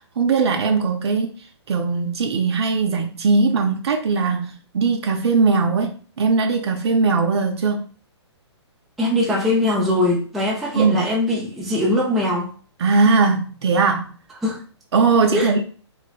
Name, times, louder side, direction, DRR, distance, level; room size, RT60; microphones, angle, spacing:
voice 1, 0.2-1.3 1.7-4.5 4.7-7.8 10.7-11.1 12.8-14.1 14.9-15.6, right 4 dB, 65° right, 0.5 m, -19 dB
voice 2, 9.0-12.5 14.4-14.6 15.3-15.5, left 1 dB, ahead, 0.4 m, -21 dB
3.1 x 2.8 x 2.4 m
hypercardioid pair, 140°, 15 cm